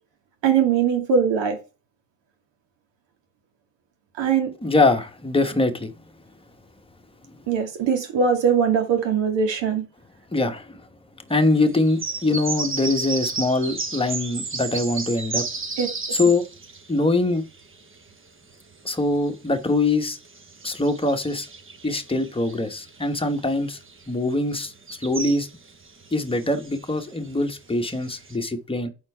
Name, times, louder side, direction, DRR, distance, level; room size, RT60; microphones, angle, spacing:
voice 1, 0.4-1.6 4.2-4.5 7.5-9.9 15.8-15.9, right 6 dB, 75° right, 2.3 m, -21 dB
voice 2, 4.6-5.9 10.3-10.9 11.3-15.4 16.1-16.4 16.9-17.4 18.8-20.2 20.6-21.5 21.8-23.8 24.1-24.7 25.0-25.5 26.1-28.9, left 2 dB, 10° left, 1.3 m, -23 dB
sound 1, 11.6-18.1 18.5-28.3, right 3 dB, 30° right, 1.2 m, -34 dB
5.6 x 4.3 x 5.5 m
cardioid pair, 85°, 44 cm